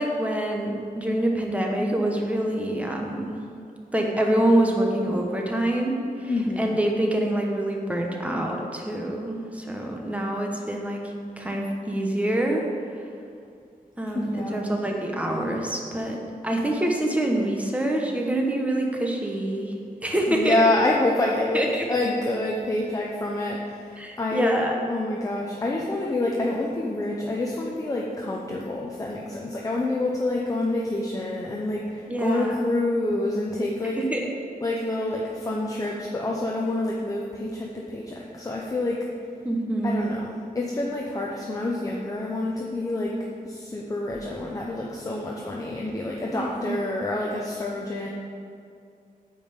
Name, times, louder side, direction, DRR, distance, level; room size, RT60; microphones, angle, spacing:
voice 1, 0.0-3.4 3.9-11.0 11.4-12.6 14.0-16.2 16.4-19.7 20.0-20.6 21.5-21.9 24.0-24.7 32.1-32.7 34.0-34.2 39.4-40.1 46.3-46.8, right 1 dB, 10° right, 0 dB, 1.1 m, -26 dB
voice 2, 6.3-6.8 14.1-14.6 20.3-24.6 24.9-34.0 34.6-39.0 39.8-43.1 43.4-48.1, left 2 dB, 20° left, -2 dB, 0.8 m, -27 dB
9.0 x 5.5 x 7.2 m, 2.4 s
wide cardioid pair, 175°, 15 cm